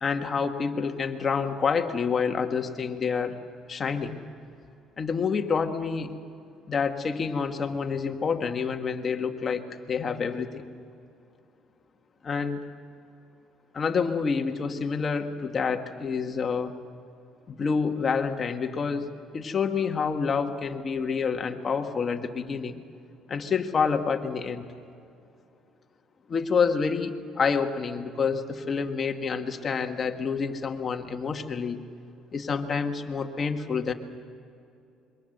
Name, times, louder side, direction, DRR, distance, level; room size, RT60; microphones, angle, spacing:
voice 1, 0.0-3.4 3.7-4.2 5.0-6.1 6.7-10.7 12.2-12.6 13.7-16.7 17.5-22.8 23.3-24.7 26.3-31.8 32.3-33.9, left 5 dB, 35° left, 5 dB, 1.7 m, -28 dB
26.5 x 23.0 x 6.7 m, 2.6 s
cardioid pair, 110°, 0 cm